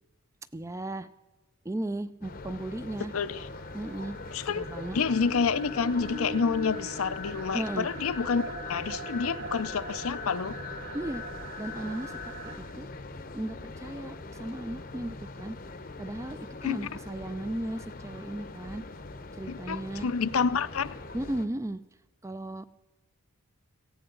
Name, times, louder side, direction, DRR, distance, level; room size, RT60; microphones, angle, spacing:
voice 1, 0.5-1.1 1.6-3.1 3.7-5.0 7.5-7.9 10.9-11.2 11.6-12.3 12.7-12.9 13.3-15.6 16.0-18.8 19.4-20.1 21.1-21.8 22.2-22.7, right 1 dB, 15° right, 13 dB, 0.4 m, -35 dB
sound 1, 2.2-21.5, left 2 dB, 40° left, 0.8 m, -43 dB
sound 2, 2.9-12.6, equal, 80° right, 4.5 m, -41 dB
voice 2, 3.1-3.5 4.3-4.6 4.9-8.4 8.7-10.6 16.6-16.8 19.5-21.0, left 5 dB, 75° left, 14 dB, 0.6 m, -28 dB
17.5 x 15.5 x 3.9 m, 1.1 s
head